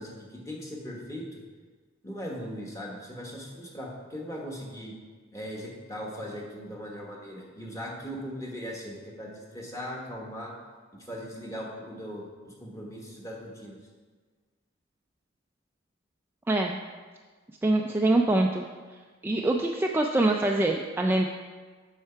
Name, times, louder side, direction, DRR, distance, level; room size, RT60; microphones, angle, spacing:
voice 1, 0.0-1.4 2.0-4.9 5.3-10.5 11.1-13.8, equal, 15° left, -3 dB, 1.4 m, -39 dB
voice 2, 16.5-16.8 17.6-18.6 19.2-21.3, right 2 dB, 10° right, 1 dB, 0.3 m, -24 dB
7.8 x 5.7 x 4.5 m, 1.4 s
head